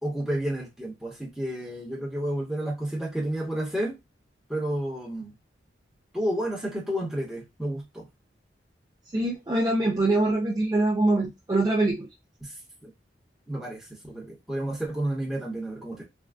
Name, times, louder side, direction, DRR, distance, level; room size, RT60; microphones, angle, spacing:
voice 1, 0.0-4.0 4.5-5.3 6.1-8.0 12.4-12.5 12.8-12.9 13.5-16.0, right 1 dB, 5° right, -3 dB, 1.0 m, -31 dB
voice 2, 9.1-12.1, right 2 dB, 20° right, 0 dB, 0.4 m, -24 dB
3.4 x 2.2 x 2.4 m, 0.20 s
head